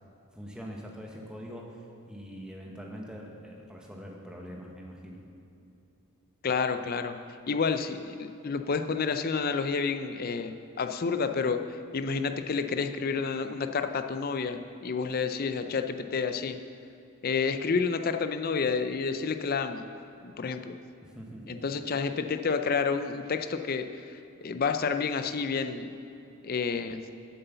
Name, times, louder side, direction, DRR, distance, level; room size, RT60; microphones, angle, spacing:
voice 1, 0.3-5.2 21.0-21.6, equal, 5° right, -1 dB, 1.1 m, -43 dB
voice 2, 6.4-7.2 7.5-11.6 11.9-16.6 17.2-19.9 20.2-20.8 21.5-25.9 26.4-27.0, left 5 dB, 40° left, 8 dB, 0.4 m, -29 dB
7.9 x 7.7 x 6.9 m, 2.7 s
head